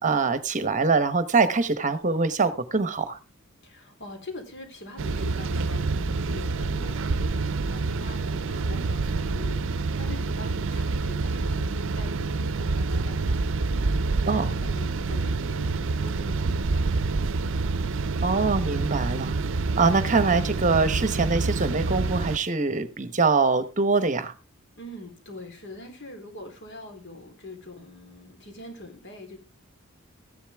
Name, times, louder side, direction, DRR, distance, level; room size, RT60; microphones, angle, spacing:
voice 1, 0.0-3.2 14.3-14.5 18.2-19.3 19.8-24.3, right 4 dB, 35° right, 1.1 m, -23 dB
voice 2, 3.6-17.3 24.8-29.4, left 2 dB, 60° left, 3.7 m, -43 dB
sound 1, 5.0-22.4, right 3 dB, 65° right, 0.6 m, -27 dB
14.5 x 11.0 x 3.5 m
head